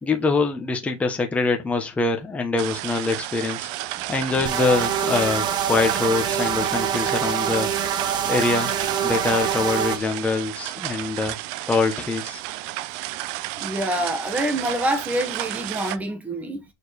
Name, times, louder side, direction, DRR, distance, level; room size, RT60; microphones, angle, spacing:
voice 1, 0.0-7.7 8.3-8.7 9.0-11.4 11.7-12.4, left 3 dB, 10° left, 1.2 m, -24 dB
sound 1, 2.6-16.0, right 17 dB, 45° right, 0.6 m, -33 dB
sound 2, 4.4-10.0, right 8 dB, 25° right, 1.1 m, -25 dB
voice 2, 13.6-16.6, right 1 dB, 10° right, 1.6 m, -26 dB
6.9 x 4.6 x 4.3 m
supercardioid pair, 160°, 16 cm